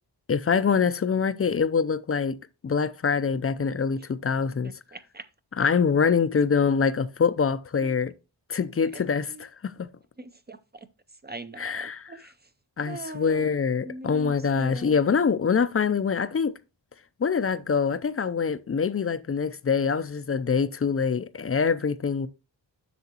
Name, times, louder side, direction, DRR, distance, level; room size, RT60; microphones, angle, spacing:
voice 1, 0.3-2.4 2.6-4.7 5.6-8.1 8.5-9.9 11.6-12.1 12.8-16.6 17.2-22.3, left 6 dB, 30° left, 0.5 m, -25 dB
voice 2, 4.6-5.2 7.8-7.9 8.9-9.0 9.3-9.4 10.2-10.9 11.2-12.3 12.9-13.5 13.8-15.0, right 2 dB, 25° right, 0.5 m, -41 dB
8.0 x 6.3 x 2.9 m
wide cardioid pair, 85°, 44 cm